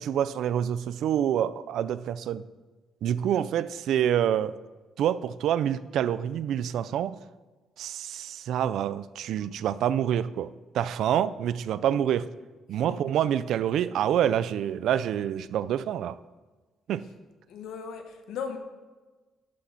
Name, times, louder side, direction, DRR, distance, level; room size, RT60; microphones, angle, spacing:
voice 1, 0.0-2.4 3.0-4.6 5.0-7.2 7.8-12.3 12.7-16.2 16.9-17.1, right 10 dB, 80° right, 16 dB, 0.3 m, -27 dB
voice 2, 17.5-18.6, left 6 dB, 85° left, 5 dB, 1.1 m, -37 dB
11.5 x 4.0 x 5.7 m, 1.3 s
cardioid pair, 130°, 0 cm